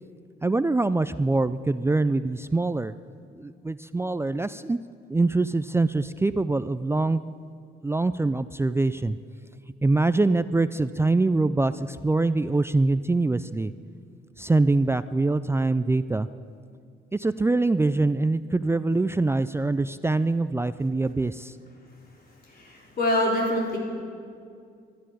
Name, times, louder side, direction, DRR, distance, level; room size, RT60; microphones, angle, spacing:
voice 1, 0.4-2.9 3.3-4.8 5.1-7.2 7.8-9.2 9.8-13.7 14.4-16.3 17.1-21.5, right 2 dB, 15° right, 13 dB, 0.4 m, -24 dB
voice 2, 22.5-23.8, left 1 dB, 50° left, -3 dB, 4.6 m, -25 dB
12.5 x 11.5 x 9.9 m, 2.3 s
cardioid pair, 90°, 20 cm